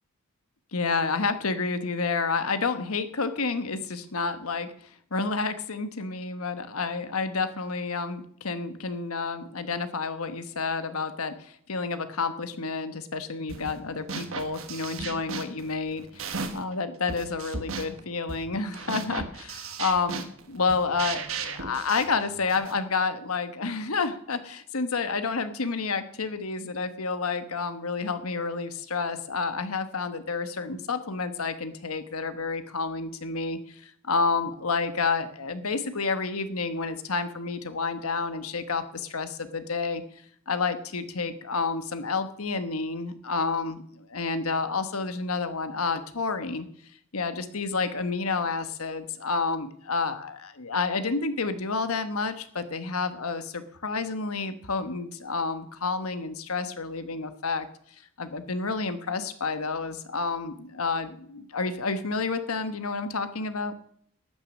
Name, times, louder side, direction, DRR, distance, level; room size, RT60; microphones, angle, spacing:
voice 1, 0.7-40.0 40.5-46.7 47.1-57.7 58.2-63.7, left 4 dB, 85° left, 10 dB, 1.2 m, -30 dB
sound 1, 13.5-13.8 14.1-16.7 17.1-22.8, right 4 dB, 65° right, 1.6 m, -36 dB
12.5 x 9.3 x 6.4 m, 0.65 s
head